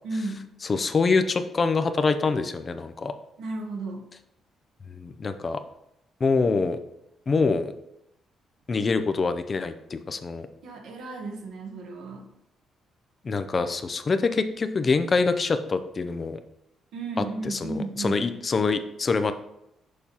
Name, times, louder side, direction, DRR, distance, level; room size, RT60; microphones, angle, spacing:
voice 1, 0.0-0.5 3.4-4.1 10.6-12.3 16.9-18.3, right 3 dB, 75° right, 2 dB, 1.2 m, -34 dB
voice 2, 0.6-3.1 4.9-5.6 6.2-6.8 7.3-7.7 8.7-10.5 13.2-16.4 17.4-19.3, left 4 dB, 35° left, 10 dB, 0.5 m, -25 dB
6.5 x 5.4 x 2.9 m, 0.82 s
cardioid pair, 90°, 0 cm